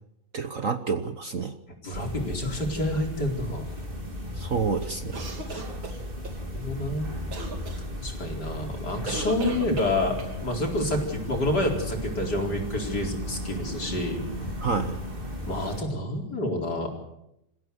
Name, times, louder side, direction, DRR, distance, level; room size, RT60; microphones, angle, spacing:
voice 1, 0.3-1.5 4.3-5.2 14.6-15.0, right 5 dB, 50° right, 8 dB, 1.3 m, -28 dB
voice 2, 1.8-3.7 5.4-5.6 6.4-7.2 7.7-14.5 15.5-16.9, left 1 dB, 55° left, 1 dB, 5.0 m, -29 dB
sound 1, 1.9-15.8, equal, 25° right, 3.7 m, -35 dB
sound 2, 5.1-6.4 7.3-7.8 9.1-10.4, right 3 dB, 80° right, 3.8 m, -36 dB
27.0 x 16.0 x 8.0 m, 0.83 s
omnidirectional pair, 2.1 m